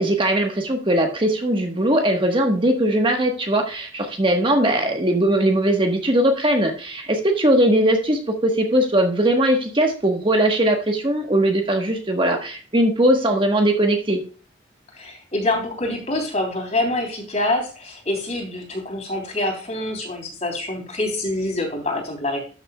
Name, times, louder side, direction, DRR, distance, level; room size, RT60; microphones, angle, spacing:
voice 1, 0.0-14.2, right 1 dB, 30° right, 3 dB, 1.3 m, -20 dB
voice 2, 14.9-22.4, left 2 dB, 40° left, 2 dB, 3.3 m, -26 dB
12.5 x 7.3 x 2.3 m, 0.38 s
head